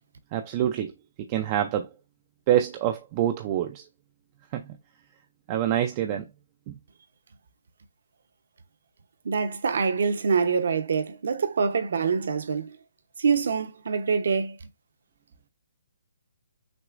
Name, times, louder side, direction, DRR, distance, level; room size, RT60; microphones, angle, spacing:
voice 1, 0.3-0.9 1.2-1.9 2.5-3.8 4.5-4.6 5.5-6.3, right 11 dB, 25° right, 0.4 m, -26 dB
voice 2, 9.2-12.8 13.2-14.6, right 5 dB, 60° right, 0.8 m, -25 dB
6.1 x 2.9 x 2.5 m
hypercardioid pair, 165°, 0 cm